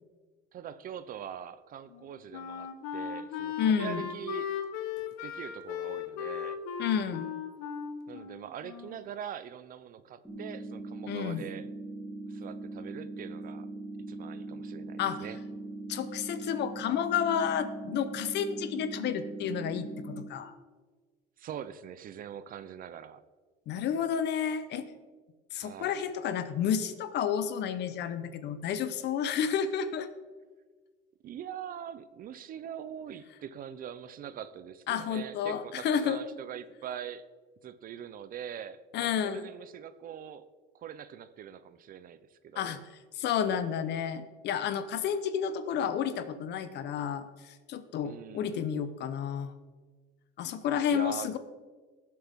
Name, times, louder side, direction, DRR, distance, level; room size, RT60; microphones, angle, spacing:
voice 1, 0.5-4.5 5.2-6.6 8.1-11.7 12.3-13.7 14.1-15.4 21.4-23.2 25.5-26.0 31.2-37.2 37.6-40.4 40.7-42.8 48.0-48.7 50.9-51.4, right 9 dB, 45° right, 14 dB, 0.6 m, -43 dB
Wind instrument woodwind instrument, 1.9-9.2, left 8 dB, 90° left, 1.3 m, -37 dB
voice 2, 3.6-4.1 6.8-7.3 11.1-11.5 15.0-15.2 15.9-20.5 23.7-24.9 25.5-30.1 34.9-36.2 38.9-39.5 42.6-42.8 43.1-49.5 50.4-51.4, left 8 dB, 55° left, 11 dB, 1.0 m, -31 dB
sound 1, 10.2-20.3, right 2 dB, ahead, 3.3 m, -41 dB
18.5 x 7.7 x 3.7 m, 1.4 s
cardioid pair, 130°, 21 cm